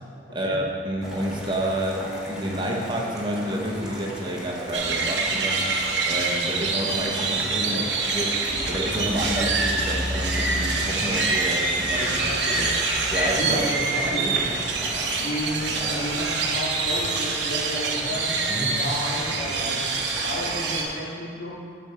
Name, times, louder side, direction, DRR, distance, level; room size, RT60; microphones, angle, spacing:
voice 1, 0.3-5.7 6.0-12.2 12.5-12.8 13.1-13.6 14.0-14.3 18.5-18.8, right 1 dB, 25° right, -1 dB, 1.1 m, -29 dB
sound 1, 1.0-20.9, equal, 5° right, 1.8 m, -33 dB
sound 2, 4.7-20.8, right 4 dB, 75° right, 0.9 m, -26 dB
voice 2, 7.5-7.9 11.9-12.7 13.2-14.5 15.1-18.3 18.6-21.6, equal, 90° left, -6 dB, 2.3 m, -32 dB
8.5 x 4.4 x 6.7 m, 2.3 s
head